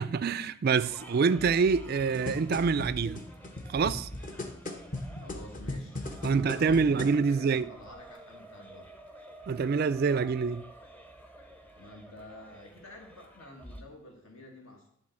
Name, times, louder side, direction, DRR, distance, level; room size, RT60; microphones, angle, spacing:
voice 1, 0.0-3.2 3.7-4.1 6.2-7.7 9.5-10.6, right 5 dB, 45° right, 0.3 m, -26 dB
sound 1, 0.8-13.8, right 1 dB, 5° left, 0.7 m, -48 dB
sound 2, 1.8-7.2 7.9-8.0, left 2 dB, 35° left, 1.0 m, -39 dB
voice 2, 5.0-8.9 11.8-14.9, left 1 dB, 70° left, 1.8 m, -49 dB
11.0 x 3.8 x 7.6 m
head